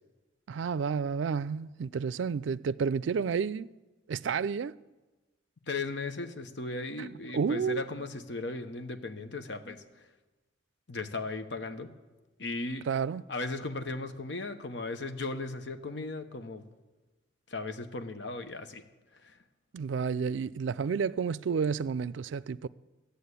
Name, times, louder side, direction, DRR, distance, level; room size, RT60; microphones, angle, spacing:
voice 1, 0.5-3.7 4.1-4.7 7.0-7.8 12.9-13.2 19.7-22.7, right 6 dB, 80° right, 0.4 m, -31 dB
voice 2, 5.7-9.8 10.9-11.9 12.4-12.9 13.3-16.6 17.5-18.8 19.2-19.3, left 3 dB, 70° left, 1.0 m, -36 dB
13.0 x 8.2 x 8.3 m
head